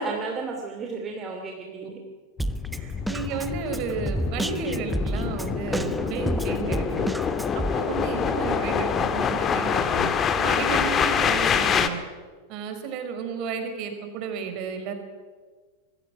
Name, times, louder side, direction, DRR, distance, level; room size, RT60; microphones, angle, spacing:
voice 1, 0.0-2.0 2.7-2.9, right 3 dB, 25° right, 1 dB, 2.7 m, -33 dB
sound 1, 2.4-11.9, left 7 dB, 25° left, 1.7 m, -26 dB
Drum kit, 2.4-7.7, right 1 dB, 5° right, 0.9 m, -30 dB
voice 2, 3.1-7.1 7.5-10.1 10.4-12.0 12.5-14.9, right 6 dB, 40° right, 6 dB, 4.5 m, -32 dB
25.5 x 21.0 x 6.1 m, 1.4 s
figure-of-eight pair, 90°, 0 cm